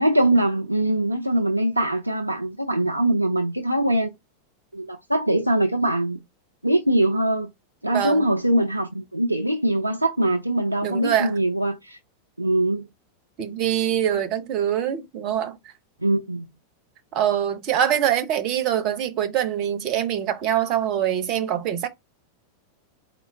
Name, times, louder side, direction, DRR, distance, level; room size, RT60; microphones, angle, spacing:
voice 1, 0.0-4.1 4.7-6.2 6.6-7.5 7.8-12.0 12.4-12.9 16.0-16.5, right 1 dB, 85° right, 0.4 m, -22 dB
voice 2, 7.9-8.3 10.8-11.3 13.4-15.6 17.1-21.9, right 10 dB, 40° right, 0.7 m, -24 dB
4.4 x 2.1 x 4.4 m
figure-of-eight pair, 90°, 0 cm